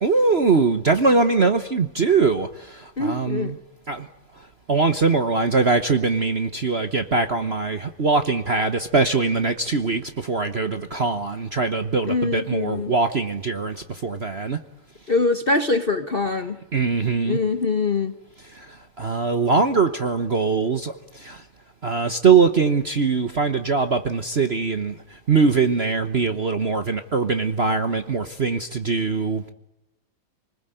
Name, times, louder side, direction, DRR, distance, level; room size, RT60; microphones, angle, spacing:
voice 1, 0.0-3.6 3.9-4.1 4.4-14.6 16.7-17.4 18.4-21.4 21.8-29.5, right 4 dB, 40° right, 1.1 m, -22 dB
voice 2, 3.0-3.6 12.1-12.9 15.1-16.6 17.2-18.1, left 3 dB, 35° left, 1.0 m, -23 dB
28.5 x 20.5 x 9.2 m
omnidirectional pair, 2.3 m